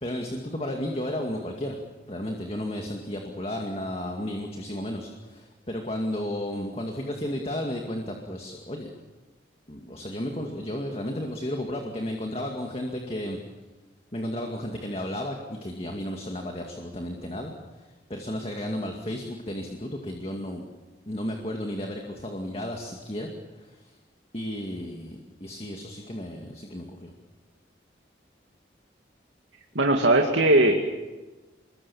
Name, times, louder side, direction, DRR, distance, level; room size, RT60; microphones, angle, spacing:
voice 1, 0.0-1.8 2.1-8.9 9.7-13.4 14.1-20.6 21.1-24.0 24.3-27.1, left 1 dB, 30° left, 2 dB, 2.2 m, -33 dB
voice 2, 29.7-30.7, right 2 dB, 90° right, 2 dB, 2.3 m, -19 dB
25.5 x 22.0 x 7.2 m, 1.2 s
head